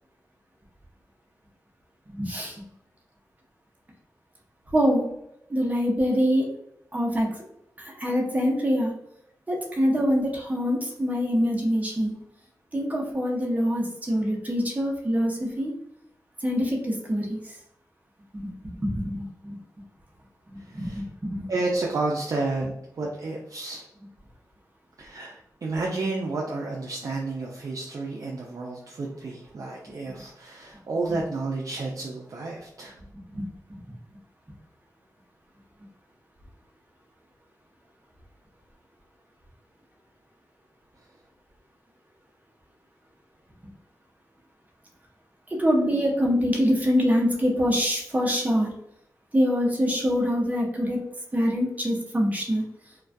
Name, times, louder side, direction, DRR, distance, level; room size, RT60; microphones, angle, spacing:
voice 1, 2.1-2.5 4.7-5.0 5.5-6.4 6.9-7.3 7.8-8.9 9.5-12.1 12.7-15.7 16.4-17.4 18.4-19.6 20.5-21.4 33.3-33.4 45.6-48.7 49.3-51.0 51.3-52.6, equal, 25° right, -1 dB, 0.7 m, -24 dB
voice 2, 20.6-21.0 21.5-23.8 25.0-32.9, right 3 dB, 55° right, -2 dB, 0.4 m, -31 dB
2.2 x 2.2 x 2.5 m, 0.80 s
cardioid pair, 65°, 7 cm